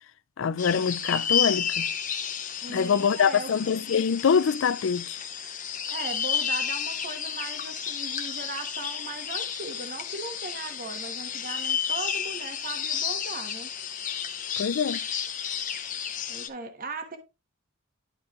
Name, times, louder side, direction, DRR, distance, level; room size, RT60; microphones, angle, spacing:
voice 1, 0.4-1.9 2.7-5.2 14.6-15.0, left 6 dB, 65° left, 0.4 m, -24 dB
sound 1, 0.6-16.5, left 8 dB, 40° left, 0.9 m, -31 dB
voice 2, 2.6-3.5 5.9-13.7 16.3-17.2, right 3 dB, 40° right, 1.2 m, -38 dB
11.5 x 4.4 x 3.0 m
head